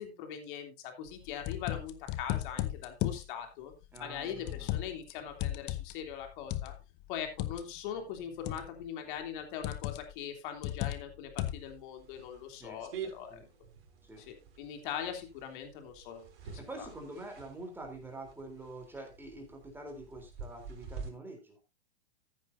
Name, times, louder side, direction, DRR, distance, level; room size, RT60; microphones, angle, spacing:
voice 1, 0.0-3.7 4.0-6.7 7.1-13.4 14.2-16.3 16.8-16.9, left 8 dB, 50° left, 4 dB, 3.2 m, -41 dB
sound 1, 1.1-3.3 4.0-5.1 5.4-7.6 8.5-8.8 9.6-10.1 10.6-11.7, left 15 dB, 35° left, 0.9 m, -35 dB
voice 2, 3.9-4.7 12.6-12.8 13.3-13.5 14.0-14.2 16.4-21.6, right 2 dB, 5° right, 3 dB, 3.6 m, -46 dB
sound 2, 11.5-21.1, right 6 dB, 55° right, 4.8 m, -48 dB
14.5 x 9.0 x 2.7 m, 0.26 s
hypercardioid pair, 120°, 33 cm